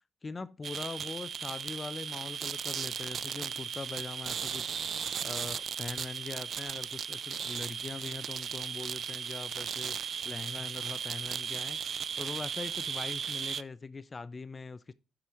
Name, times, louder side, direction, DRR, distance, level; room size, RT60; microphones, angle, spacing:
voice 1, 0.2-14.9, left 4 dB, 25° left, 0.4 m, -42 dB
sound 1, 0.6-13.6, right 7 dB, 55° right, 0.3 m, -36 dB
13.0 x 4.9 x 3.0 m
cardioid pair, 90°, 0 cm